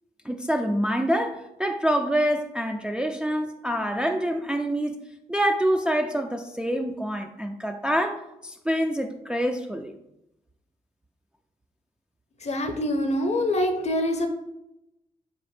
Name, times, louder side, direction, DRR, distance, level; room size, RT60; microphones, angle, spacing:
voice 1, 0.2-5.0 5.3-9.9, equal, 5° right, 4 dB, 0.3 m, -26 dB
voice 2, 12.4-14.3, left 1 dB, 40° left, 6 dB, 0.7 m, -25 dB
4.1 x 3.0 x 3.2 m, 0.88 s
hypercardioid pair, 45°, 16 cm